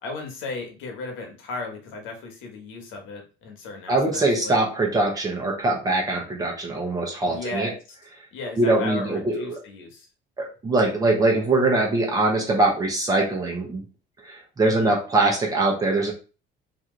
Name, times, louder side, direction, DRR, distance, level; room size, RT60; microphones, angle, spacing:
voice 1, 0.0-4.6 7.2-7.8 8.3-10.1 14.6-14.9, left 3 dB, 70° left, 3 dB, 1.3 m, -35 dB
voice 2, 3.9-7.7 8.6-9.6 10.4-13.8 14.2-16.1, right 2 dB, 15° right, -1 dB, 1.0 m, -22 dB
3.1 x 3.0 x 3.8 m, 0.33 s
cardioid pair, 180°, 21 cm